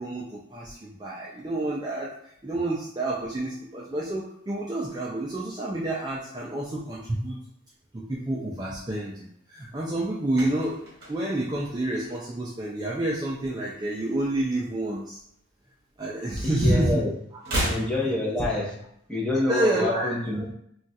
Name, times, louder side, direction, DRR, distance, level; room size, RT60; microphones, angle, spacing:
voice 1, 0.0-2.1 2.4-7.4 7.9-10.8 11.1-15.2 16.0-17.0 17.4-17.6 18.0-18.1 19.5-20.2, right 1 dB, 20° right, -5 dB, 0.3 m, -29 dB
sound 1, 10.3-12.6 12.9-13.2 13.5-15.0 15.2-16.6 16.8-19.0 19.2-19.3, right 1 dB, 45° right, 1.0 m, -35 dB
voice 2, 16.4-17.1 17.6-18.8 19.1-20.5, left 1 dB, 5° left, -6 dB, 0.7 m, -27 dB
2.4 x 2.3 x 4.0 m, 0.72 s
head